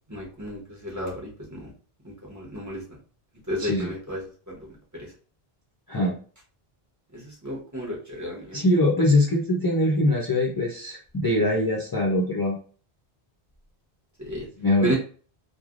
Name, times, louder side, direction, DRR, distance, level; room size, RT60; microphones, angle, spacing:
voice 1, 0.1-1.7 2.0-2.8 3.5-4.2 4.5-4.7 4.9-5.1 7.1-8.6 14.2-14.5 14.8-14.9, equal, 20° right, -3 dB, 0.9 m, -32 dB
voice 2, 3.6-3.9 5.9-6.2 8.5-12.5 14.4-14.9, left 1 dB, 25° left, -3 dB, 0.5 m, -23 dB
3.2 x 2.1 x 2.4 m, 0.40 s
omnidirectional pair, 1.1 m